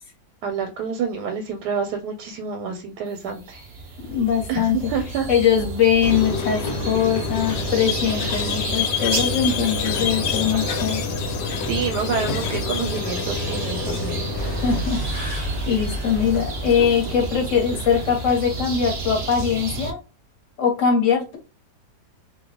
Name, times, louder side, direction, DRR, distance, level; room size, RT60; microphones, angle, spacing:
voice 1, 0.4-3.7 4.5-5.3 11.7-14.2, right 6 dB, 85° right, 5 dB, 1.2 m, -28 dB
sound 1, 3.2-19.9, right 3 dB, 50° right, 0.8 m, -32 dB
voice 2, 4.1-4.9 5.3-11.0 14.4-20.0 20.6-21.4, left 7 dB, 55° left, 2 dB, 1.3 m, -22 dB
Squeak, 6.0-14.8, left 5 dB, 85° left, 1.4 m, -27 dB
sound 2, 14.3-18.2, right 1 dB, 10° left, 0.8 m, -31 dB
2.9 x 2.2 x 3.6 m, 0.32 s
omnidirectional pair, 1.7 m